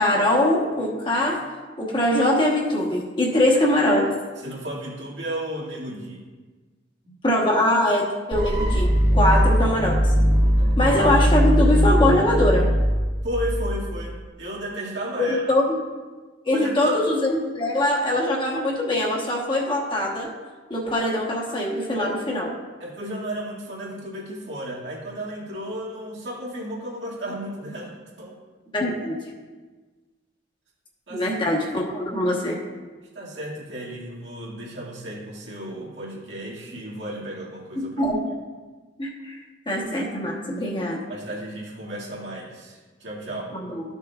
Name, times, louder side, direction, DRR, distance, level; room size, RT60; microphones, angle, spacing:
voice 1, 0.0-1.4 1.8-4.2 7.2-10.1 10.8-12.7 15.2-15.8 16.4-20.3 20.7-22.5 28.7-29.2 31.1-32.6 37.8-38.2 39.0-39.4 39.7-41.1 43.5-43.8, left 1 dB, 25° left, -2 dB, 1.2 m, -22 dB
voice 2, 4.4-6.2 7.0-7.1 10.6-10.8 13.2-15.4 16.5-17.0 22.0-22.1 22.8-27.9 28.2-28.4 31.1-31.3 33.1-37.9 41.1-43.5, right 1 dB, 80° right, -5 dB, 2.2 m, -33 dB
sound 1, 8.3-14.2, equal, 35° right, 1.6 m, -20 dB
13.0 x 6.6 x 2.4 m, 1.3 s
head